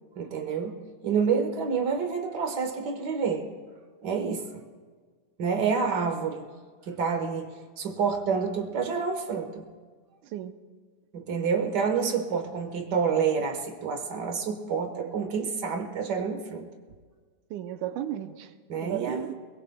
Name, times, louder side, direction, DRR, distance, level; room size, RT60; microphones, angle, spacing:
voice 1, 0.1-0.7 1.0-3.5 4.0-4.6 5.4-6.5 6.9-7.5 7.8-9.7 11.1-16.7 18.7-19.3, right 6 dB, 60° right, 4 dB, 1.1 m, -28 dB
voice 2, 10.2-10.6 14.9-15.1 17.5-18.5 18.8-19.3, right 12 dB, 90° right, 10 dB, 2.1 m, -35 dB
22.5 x 21.5 x 2.2 m, 1.6 s
omnidirectional pair, 3.4 m